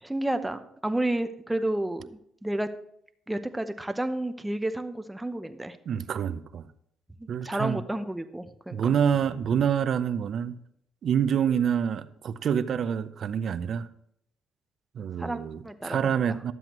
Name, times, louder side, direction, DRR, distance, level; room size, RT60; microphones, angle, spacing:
voice 1, 0.0-2.7 3.3-5.8 7.2-8.9 15.2-16.3, right 1 dB, 10° right, 0.7 m, -31 dB
voice 2, 5.9-6.7 7.3-7.8 8.7-10.6 11.0-13.9 15.0-16.5, right 8 dB, 60° right, 0.5 m, -27 dB
12.0 x 7.7 x 3.0 m
cardioid pair, 90°, 0 cm